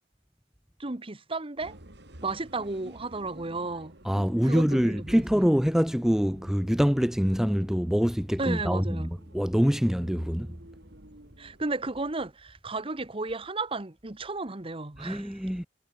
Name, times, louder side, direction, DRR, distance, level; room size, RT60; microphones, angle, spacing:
voice 1, 0.8-1.8 2.2-3.9 4.4-5.2 8.4-9.1 11.4-15.3, right 3 dB, 30° right, 1.3 m, -33 dB
sound 1, 1.6-11.8, right 1 dB, 60° right, 4.0 m, -51 dB
voice 2, 4.0-10.5 15.0-15.7, equal, 5° right, 0.7 m, -25 dB
head